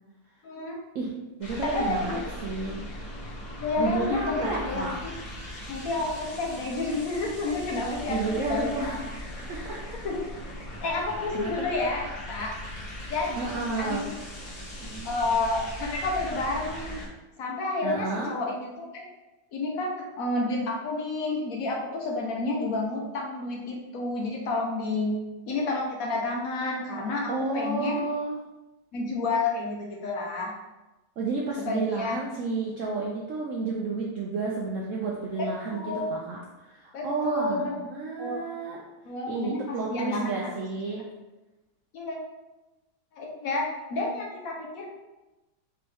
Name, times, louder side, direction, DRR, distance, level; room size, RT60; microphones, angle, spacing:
voice 1, 0.4-0.8 1.6-2.2 3.6-5.1 5.7-8.2 8.5-9.0 10.0-10.3 10.8-12.5 13.1-14.1 15.0-16.9 17.4-19.1 19.5-25.1 25.5-28.0 28.9-30.5 31.6-32.2 35.4-36.2 36.9-37.7 38.2-38.4 39.0-40.5 41.9-42.2 43.1-44.9, left 2 dB, 65° left, -1 dB, 1.0 m, -30 dB
sound 1, 1.4-17.1, left 1 dB, 30° left, 1.2 m, -39 dB
voice 2, 1.4-2.8 3.8-4.9 8.1-9.9 11.3-11.5 13.4-14.1 14.8-15.2 17.8-18.3 27.3-28.3 31.2-38.8 39.3-41.0, right 3 dB, 70° right, -2 dB, 0.7 m, -31 dB
4.6 x 3.0 x 3.4 m, 1.1 s
omnidirectional pair, 1.8 m